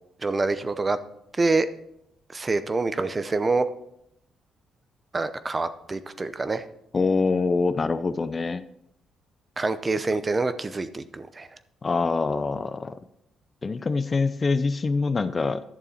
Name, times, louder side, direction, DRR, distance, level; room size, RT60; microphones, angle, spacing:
voice 1, 0.2-1.0 1.4-1.7 2.3-3.7 5.1-6.6 9.6-11.5, right 3 dB, 25° right, 12 dB, 0.7 m, -26 dB
voice 2, 6.9-8.6 11.8-13.0 13.6-15.6, left 4 dB, 35° left, 13 dB, 0.4 m, -25 dB
11.5 x 6.9 x 4.3 m, 0.77 s
cardioid pair, 90°, 0 cm